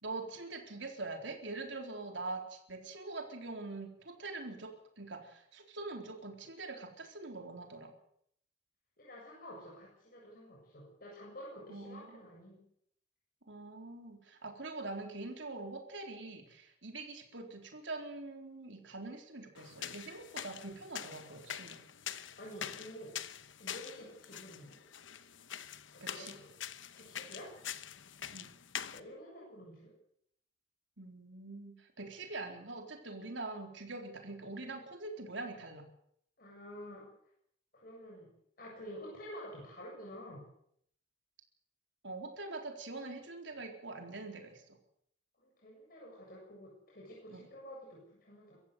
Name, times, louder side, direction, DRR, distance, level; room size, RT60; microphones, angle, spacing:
voice 1, 0.0-7.9 11.7-12.2 13.5-21.8 26.0-26.3 28.3-28.5 31.0-35.8 42.0-44.8 47.3-47.5, right 3 dB, 70° right, 3 dB, 4.0 m, -44 dB
voice 2, 9.0-12.6 22.4-23.1 23.6-24.8 25.9-26.5 26.9-27.5 28.9-29.9 36.4-37.1 37.7-38.3 38.6-40.4 45.4-48.6, equal, 50° left, -3 dB, 7.6 m, -49 dB
sound 1, 19.5-29.0, left 9 dB, 80° left, 1.1 m, -45 dB
24.5 x 15.0 x 8.1 m, 0.69 s
head